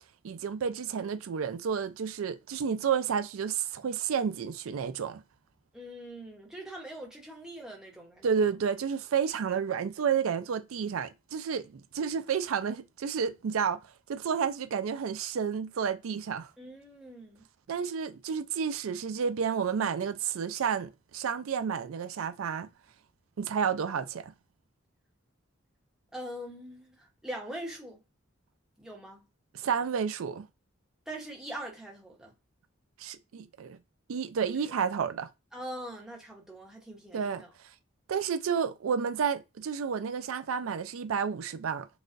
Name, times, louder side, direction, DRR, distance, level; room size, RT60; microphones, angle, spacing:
voice 1, 0.2-5.2 8.2-13.8 14.1-16.5 17.7-22.7 23.4-24.3 29.5-30.5 33.0-33.8 34.1-35.3 37.1-37.4 38.1-41.9, right 7 dB, 90° right, 0.4 m, -31 dB
voice 2, 5.7-8.3 16.6-17.4 26.1-28.0 28.8-29.2 31.1-32.3 35.5-37.5, right 1 dB, 5° right, 0.8 m, -42 dB
4.0 x 2.3 x 2.5 m
head